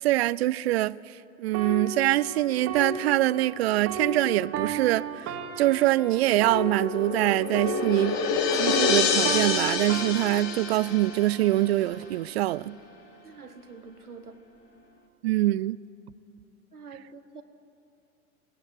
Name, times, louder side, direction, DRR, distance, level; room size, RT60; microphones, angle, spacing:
voice 1, 0.0-1.0 1.4-5.3 5.6-8.2 8.5-12.8 15.2-15.8, right 16 dB, 45° right, 0.5 m, -24 dB
sound 1, 1.5-8.4 8.7-12.3 12.9-13.1, right 4 dB, 30° right, 2.0 m, -35 dB
sound 2, 6.2-11.5, left 6 dB, 35° left, 1.7 m, -28 dB
voice 2, 13.2-14.4 16.7-17.4, right 5 dB, 90° right, 1.5 m, -46 dB
18.5 x 18.0 x 8.4 m
figure-of-eight pair, 100°, 44 cm